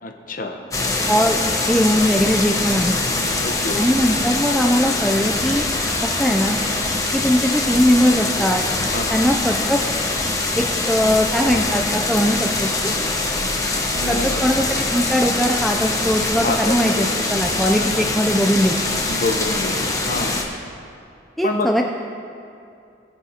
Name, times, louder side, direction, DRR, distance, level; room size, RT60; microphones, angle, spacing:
voice 1, 0.0-0.6 3.2-4.0 8.9-9.2 13.9-14.5 16.4-17.1 17.5-17.8 19.0-20.4 21.4-21.7, left 2 dB, 45° left, 3 dB, 0.9 m, -27 dB
sound 1, 0.7-20.4, left 2 dB, 20° left, 1.0 m, -23 dB
voice 2, 1.1-1.4 1.7-3.0 3.8-5.7 6.0-6.6 7.1-8.6 9.1-9.8 10.6-12.9 14.1-18.7 21.4-21.8, equal, ahead, 1 dB, 0.4 m, -20 dB
20.0 x 7.1 x 2.8 m, 2.5 s
head